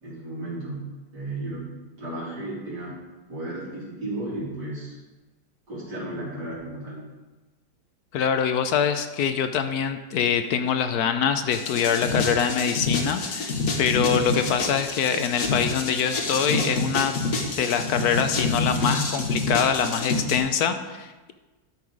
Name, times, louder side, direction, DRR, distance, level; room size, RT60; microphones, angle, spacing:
voice 1, 0.0-3.0 3.3-5.0 5.7-7.1, right 2 dB, 65° right, -7 dB, 3.5 m, -34 dB
voice 2, 8.1-17.1 17.6-21.3, left 7 dB, 70° left, 9 dB, 1.0 m, -24 dB
sound 1, 11.5-20.4, left 3 dB, 50° left, 1.4 m, -27 dB
11.5 x 5.7 x 4.7 m, 1.2 s
omnidirectional pair, 2.0 m